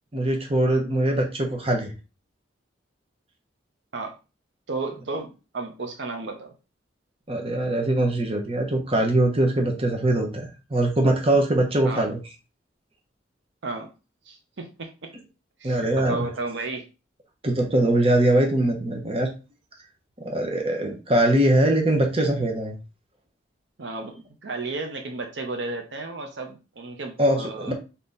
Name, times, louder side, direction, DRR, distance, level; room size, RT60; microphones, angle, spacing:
voice 1, 0.1-1.9 7.3-12.2 15.6-16.2 17.4-19.3 20.2-22.7 27.2-27.4 27.6-27.7, right 1 dB, 30° right, 2 dB, 0.9 m, -22 dB
voice 2, 4.7-5.3 5.5-6.5 11.8-12.1 13.6-13.9 14.3-14.9 15.6-16.8 23.8-27.7, right 3 dB, 70° right, 4 dB, 0.7 m, -33 dB
3.5 x 2.9 x 4.0 m, 0.31 s
head